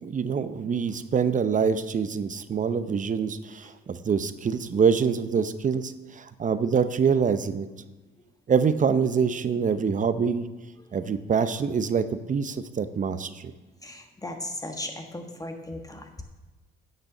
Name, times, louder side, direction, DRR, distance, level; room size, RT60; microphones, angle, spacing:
voice 1, 0.0-7.7 8.5-10.5 10.9-13.5, right 6 dB, 40° right, 12 dB, 0.7 m, -25 dB
voice 2, 13.8-16.2, left 1 dB, 20° left, 4 dB, 1.4 m, -37 dB
10.0 x 6.6 x 7.2 m, 1.2 s
cardioid pair, 90°, 20 cm